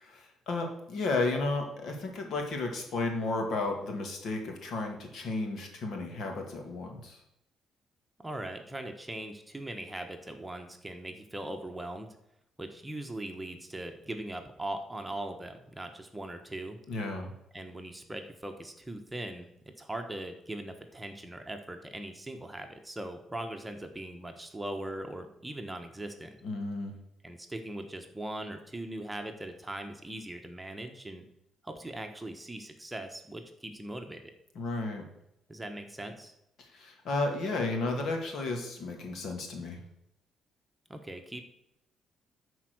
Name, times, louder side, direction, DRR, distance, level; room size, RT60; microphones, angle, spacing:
voice 1, 0.0-7.2 16.9-17.3 26.4-26.9 34.6-35.1 36.6-39.8, left 2 dB, 70° left, 3 dB, 2.4 m, -33 dB
voice 2, 8.2-12.1 12.6-16.8 17.5-19.5 19.8-26.4 27.2-31.2 31.6-34.2 35.5-36.3 40.9-41.4, right 1 dB, 10° right, 5 dB, 1.3 m, -40 dB
11.5 x 4.7 x 6.2 m, 0.82 s
cardioid pair, 90°, 0 cm